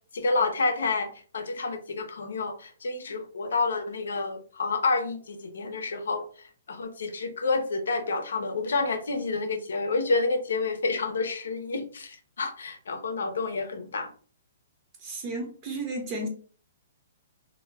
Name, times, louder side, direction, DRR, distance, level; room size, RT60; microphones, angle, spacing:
voice 1, 0.1-14.1 16.2-16.3, left 3 dB, 85° left, 6 dB, 0.5 m, -29 dB
voice 2, 15.0-16.3, right 2 dB, 25° right, 2 dB, 0.7 m, -33 dB
2.2 x 2.1 x 3.3 m, 0.42 s
hypercardioid pair, 155°, 0 cm